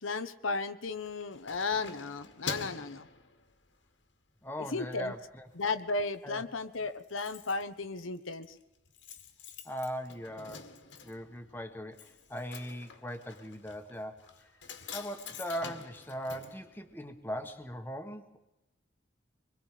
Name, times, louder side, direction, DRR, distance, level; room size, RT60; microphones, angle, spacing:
voice 1, 0.0-3.1 4.7-5.1 5.6-8.5, left 3 dB, 90° left, 9 dB, 1.1 m, -34 dB
Keys jangling, 0.9-3.9 4.4-4.6 5.0-5.7 5.9-6.0 6.3-6.4 6.6-17.4 17.7-17.8, left 5 dB, 70° left, 2.1 m, -46 dB
voice 2, 4.4-5.5 6.2-6.4 9.6-10.6 11.0-14.3 14.9-18.4, equal, 10° left, 6 dB, 1.5 m, -39 dB
25.0 x 21.5 x 5.0 m, 0.95 s
head